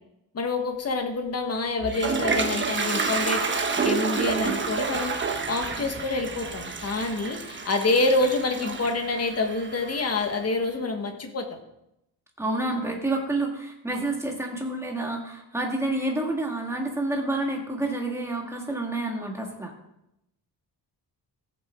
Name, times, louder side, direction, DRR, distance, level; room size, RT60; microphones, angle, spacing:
voice 1, 0.3-3.4 3.8-11.6, left 3 dB, 35° left, 5 dB, 1.5 m, -27 dB
Toilet flush, 1.5-10.4, right 4 dB, 25° right, 1.1 m, -29 dB
voice 2, 12.4-19.7, right 2 dB, 5° right, 0 dB, 1.9 m, -29 dB
15.5 x 8.6 x 3.7 m, 0.84 s
wide cardioid pair, 175°, 41 cm